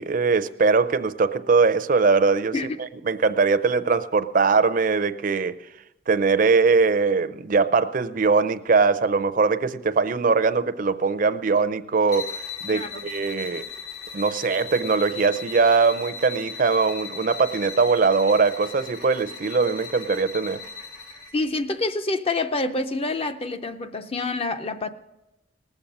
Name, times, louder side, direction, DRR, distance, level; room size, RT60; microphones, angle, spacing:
voice 1, 0.0-2.5 3.1-5.6 6.1-12.3 12.6-13.6 14.1-20.6, right 4 dB, 45° right, 0.5 m, -21 dB
sound 1, 12.1-21.4, left 5 dB, 60° left, 2.3 m, -37 dB
voice 2, 12.7-13.1 21.3-24.9, left 2 dB, 30° left, 0.6 m, -27 dB
19.0 x 7.2 x 5.3 m
head